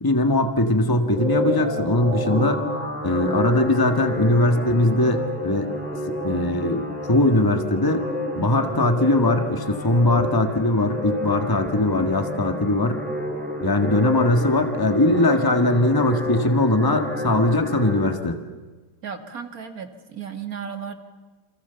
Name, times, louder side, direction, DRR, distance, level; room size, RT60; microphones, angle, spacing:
voice 1, 0.0-2.6 3.0-5.7 6.2-8.0 8.4-13.0 13.6-18.4, left 2 dB, 15° left, 6 dB, 1.6 m, -20 dB
sound 1, 1.0-18.1, equal, 5° right, 3.7 m, -29 dB
voice 2, 19.0-21.0, right 7 dB, 55° right, 7 dB, 2.6 m, -34 dB
29.0 x 27.0 x 7.0 m, 1.3 s
omnidirectional pair, 1.8 m